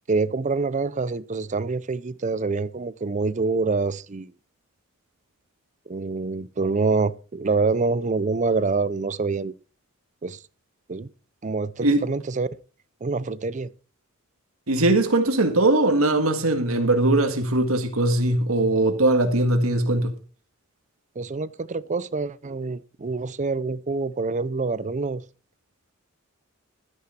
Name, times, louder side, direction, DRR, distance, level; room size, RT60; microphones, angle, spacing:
voice 1, 0.1-4.3 5.9-9.5 10.2-10.4 10.9-11.1 11.4-12.5 13.0-13.7 21.2-25.2, right 4 dB, 35° right, 0.5 m, -26 dB
voice 2, 14.7-20.1, right 2 dB, 75° right, 1.8 m, -20 dB
13.0 x 10.0 x 4.4 m
head